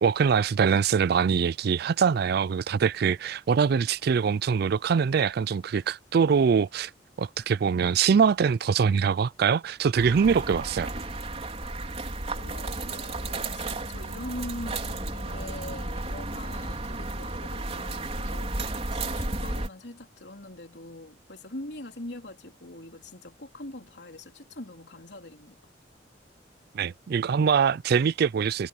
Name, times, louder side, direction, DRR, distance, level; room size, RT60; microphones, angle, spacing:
voice 1, 0.0-6.9 7.2-10.9 26.7-28.7, right 6 dB, 60° right, 0.4 m, -23 dB
sound 1, 10.0-19.7, right 2 dB, 35° right, 4.3 m, -33 dB
voice 2, 12.4-25.6, left 1 dB, 65° left, 3.7 m, -42 dB
head